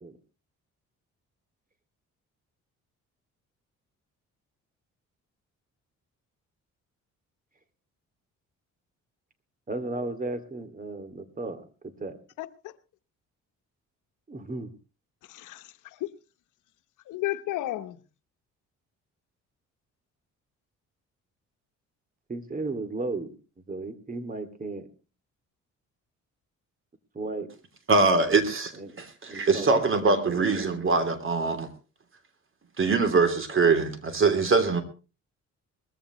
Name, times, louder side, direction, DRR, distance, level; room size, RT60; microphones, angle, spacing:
voice 1, 9.7-12.2 14.3-14.7 22.3-23.4 23.7-24.9 27.1-27.5 28.7-29.0 29.3-30.4, right 3 dB, 30° right, 2.4 m, -35 dB
voice 2, 12.4-12.7 15.3-16.1 17.1-18.0, left 16 dB, 85° left, 1.0 m, -33 dB
voice 3, 27.9-28.7 29.0-31.7 32.8-34.8, right 4 dB, 45° right, 3.2 m, -23 dB
20.5 x 14.5 x 3.1 m
cardioid pair, 90°, 30 cm